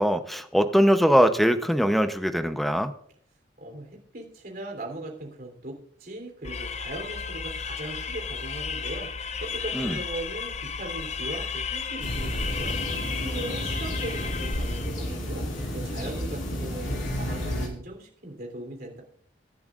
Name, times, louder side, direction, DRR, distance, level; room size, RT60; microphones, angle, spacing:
voice 1, 0.0-2.9 9.7-10.0, equal, ahead, 9 dB, 0.7 m, -22 dB
voice 2, 3.6-9.1 9.4-12.8 13.1-15.5 15.7-19.0, right 1 dB, 50° right, 2 dB, 3.3 m, -39 dB
sound 1, 6.4-15.0, left 6 dB, 35° left, 0.6 m, -34 dB
sound 2, 12.0-17.7, left 1 dB, 85° left, 4.1 m, -31 dB
23.5 x 11.0 x 2.5 m, 0.62 s
head